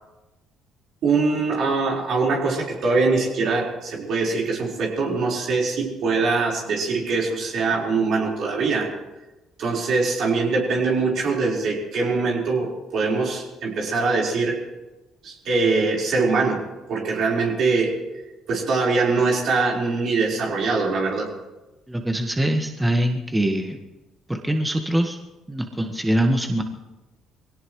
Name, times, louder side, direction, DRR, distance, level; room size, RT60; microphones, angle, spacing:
voice 1, 1.0-8.9 9.6-14.6 15.2-16.6 16.9-18.0 18.5-21.3, right 4 dB, 60° right, -2 dB, 4.6 m, -23 dB
voice 2, 21.9-23.8 24.3-25.2 25.5-26.6, right 1 dB, 10° right, 4 dB, 1.6 m, -23 dB
23.5 x 17.5 x 3.2 m, 1.1 s
hypercardioid pair, 50°, 0 cm